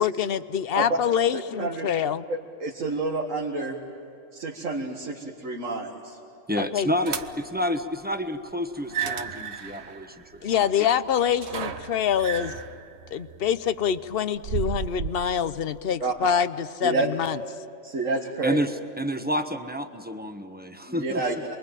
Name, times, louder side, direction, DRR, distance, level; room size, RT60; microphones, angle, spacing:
voice 1, 0.0-2.2 6.6-6.9 10.4-12.5 13.1-17.4, left 8 dB, 55° left, 14 dB, 0.9 m, -25 dB
voice 2, 1.3-1.9 2.3-3.8 4.3-6.2 16.0-16.3 16.8-17.1 17.8-18.6 20.9-21.3, right 3 dB, 85° right, -1 dB, 2.2 m, -29 dB
voice 3, 6.5-10.7 18.4-21.4, equal, 10° right, 7 dB, 1.1 m, -29 dB
sound 1, 7.0-7.6 8.8-15.4, right 7 dB, 60° right, 1.2 m, -34 dB
28.5 x 22.5 x 9.1 m, 2.7 s
omnidirectional pair, 1.3 m